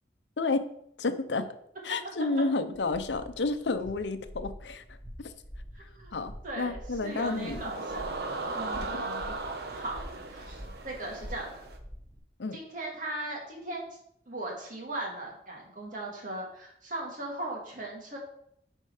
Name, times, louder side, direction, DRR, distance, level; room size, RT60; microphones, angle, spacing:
voice 1, 0.4-0.7 1.0-1.5 1.8-4.8 5.2-5.3 6.1-7.6 8.8-9.0 12.4-12.6, left 3 dB, 85° left, 10 dB, 0.7 m, -31 dB
sound 1, 2.7-12.2, equal, 5° right, 3.3 m, -46 dB
voice 2, 5.7-6.1 6.4-8.1 8.5-9.3 9.6-10.0 10.3-11.5 12.5-13.8 14.3-18.2, right 1 dB, 50° right, -2 dB, 2.4 m, -38 dB
sound 2, 7.0-11.8, right 3 dB, 65° right, 1.0 m, -37 dB
9.9 x 4.5 x 4.9 m, 0.72 s
head